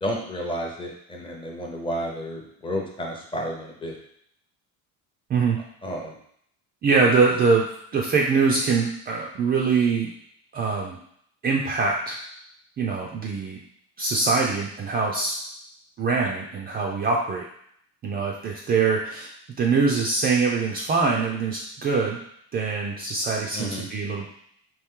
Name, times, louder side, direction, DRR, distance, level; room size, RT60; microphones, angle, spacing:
voice 1, 0.0-4.0 5.8-6.2 23.5-23.8, equal, 15° left, -1 dB, 0.6 m, -31 dB
voice 2, 6.8-7.7 7.9-10.1 10.5-11.0 11.4-12.2 12.8-13.6 14.0-15.3 16.0-17.4 18.0-19.3 19.6-22.2 22.5-24.3, right 4 dB, 25° right, -1 dB, 0.4 m, -23 dB
4.5 x 3.1 x 3.6 m, 0.68 s
cardioid pair, 170°, 37 cm